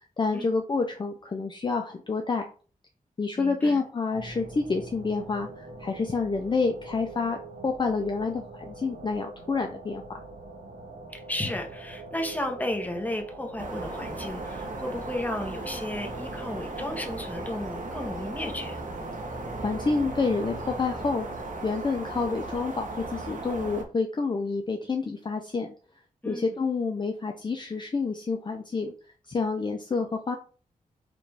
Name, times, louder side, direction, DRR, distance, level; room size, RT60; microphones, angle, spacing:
voice 1, 0.2-2.5 3.2-10.2 19.6-25.7 26.3-28.9 29.3-30.4, left 4 dB, 30° left, 3 dB, 0.5 m, -28 dB
voice 2, 3.4-3.8 11.1-18.8 26.2-26.5, left 1 dB, 10° left, 3 dB, 0.9 m, -34 dB
sound 1, 4.1-21.4, right 1 dB, 90° right, 1.0 m, -44 dB
sound 2, 13.6-23.8, right 2 dB, 60° right, 0.9 m, -37 dB
4.9 x 2.5 x 3.4 m, 0.38 s
wide cardioid pair, 100°, 15 cm